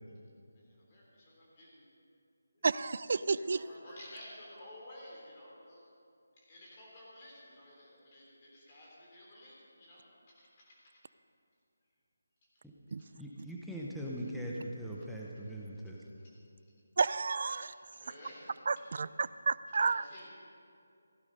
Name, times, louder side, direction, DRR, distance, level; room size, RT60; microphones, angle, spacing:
voice 1, 0.4-1.9 2.5-2.7 3.3-6.0 6.3-11.0 12.4-12.5 16.2-16.4 17.5-18.8 19.8-20.3, left 1 dB, 25° left, -4 dB, 3.6 m, -54 dB
voice 2, 2.6-3.6 12.9-13.0 17.0-17.7 18.7-20.0, right 4 dB, 45° right, 16 dB, 0.3 m, -31 dB
voice 3, 13.2-16.0, equal, ahead, -5 dB, 0.7 m, -40 dB
15.5 x 11.5 x 5.4 m, 2.5 s
figure-of-eight pair, 175°, 0 cm